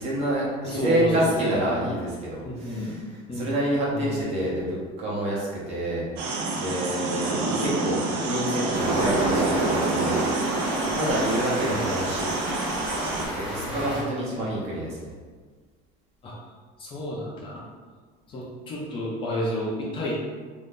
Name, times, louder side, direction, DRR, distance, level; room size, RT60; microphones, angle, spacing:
voice 1, 0.0-3.0 3.3-10.2 10.5-12.3 13.0-15.1, right 1 dB, 35° right, -5 dB, 0.8 m, -28 dB
voice 2, 0.6-1.9 2.4-3.5 3.9-4.3 11.7-11.8 13.6-13.8 14.4-14.5 16.2-16.3 16.8-17.6 18.3-20.2, equal, 30° left, -4 dB, 0.5 m, -31 dB
sound 1, 6.2-13.2, right 3 dB, 60° right, 0.6 m, -27 dB
Stream, 8.7-14.0, equal, 5° right, 0.9 m, -33 dB
2.6 x 2.6 x 3.5 m, 1.5 s
cardioid pair, 160°, 18 cm